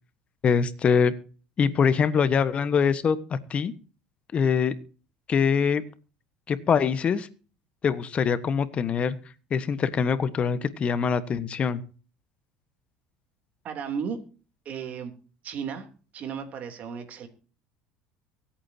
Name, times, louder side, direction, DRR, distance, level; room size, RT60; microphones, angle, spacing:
voice 1, 0.4-1.1 1.6-3.7 4.3-4.8 5.3-5.8 6.5-7.3 7.8-9.2 9.5-11.8, left 6 dB, 35° left, 13 dB, 1.3 m, -23 dB
voice 2, 13.6-14.2 14.6-15.1 15.4-15.9 16.1-17.3, right 7 dB, 50° right, 6 dB, 3.1 m, -34 dB
23.5 x 8.9 x 2.8 m, 0.37 s
supercardioid pair, 100°, 3 cm